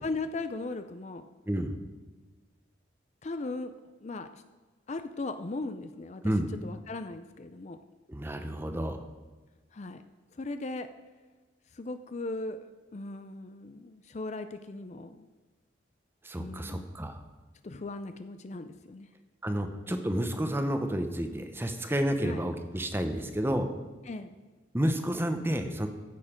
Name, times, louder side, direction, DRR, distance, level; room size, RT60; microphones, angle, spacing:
voice 1, 0.0-1.3 3.2-4.4 4.9-6.3 6.6-7.8 9.7-10.0 10.4-10.9 11.7-12.7 12.9-15.3 16.4-16.9 17.6-19.1 22.2-22.4 24.1-24.4, left 3 dB, 35° left, 10 dB, 0.4 m, -38 dB
voice 2, 8.1-9.0 16.2-17.2 19.4-23.7 24.7-25.9, equal, 10° right, 7 dB, 0.8 m, -30 dB
14.5 x 6.6 x 5.1 m, 1.3 s
head